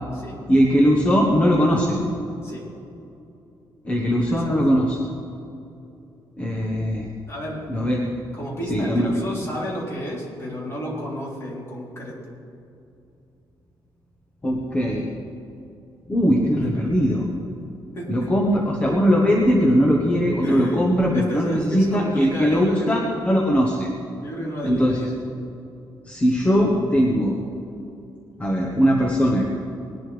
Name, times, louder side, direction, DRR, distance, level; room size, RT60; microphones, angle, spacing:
voice 1, 0.5-2.0 3.9-5.0 6.4-7.1 7.7-8.1 8.7-9.1 14.4-15.1 16.1-17.3 18.1-23.0 23.2-23.9 24.6-25.1 26.1-27.4 28.4-29.5, equal, 15° left, -1 dB, 1.2 m, -20 dB
voice 2, 3.8-4.6 7.3-7.8 8.3-12.3 16.6-16.7 17.9-18.3 20.4-23.0 24.2-25.2, equal, 35° left, -4 dB, 3.5 m, -32 dB
20.0 x 11.5 x 3.4 m, 2.7 s
cardioid pair, 155°, 8 cm